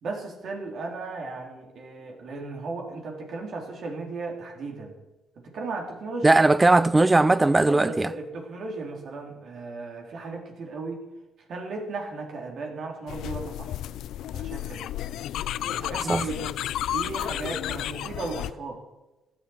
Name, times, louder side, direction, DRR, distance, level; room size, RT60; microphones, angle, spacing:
voice 1, 0.0-4.9 5.4-6.4 7.7-11.1 11.5-13.7 14.3-14.8 15.6-16.5 16.9-18.8, right 3 dB, 65° right, 3.7 m, -36 dB
voice 2, 6.2-8.1 16.1-16.3, right 2 dB, 20° right, 0.5 m, -19 dB
sound 1, 13.1-18.5, left 12 dB, 80° left, 0.4 m, -32 dB
15.0 x 11.0 x 4.6 m
cardioid pair, 90°, 0 cm